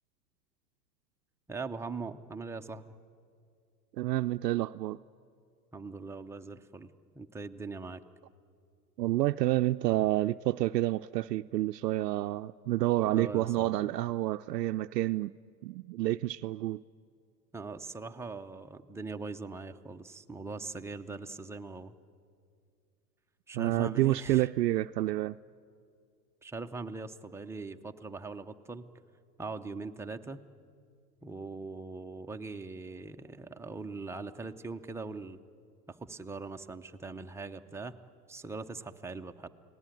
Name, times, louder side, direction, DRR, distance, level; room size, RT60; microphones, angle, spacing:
voice 1, 1.5-2.9 5.7-6.9 7.2-8.0 13.1-13.9 17.5-21.9 23.5-24.5 26.4-28.9 29.4-30.4 31.2-35.4 35.9-38.0 38.3-39.5, right 3 dB, 5° right, 0.6 m, -41 dB
voice 2, 4.0-5.0 9.0-15.3 15.6-16.8 23.5-25.4, right 15 dB, 75° right, 0.6 m, -29 dB
29.5 x 19.0 x 9.2 m
hypercardioid pair, 100°, 50 cm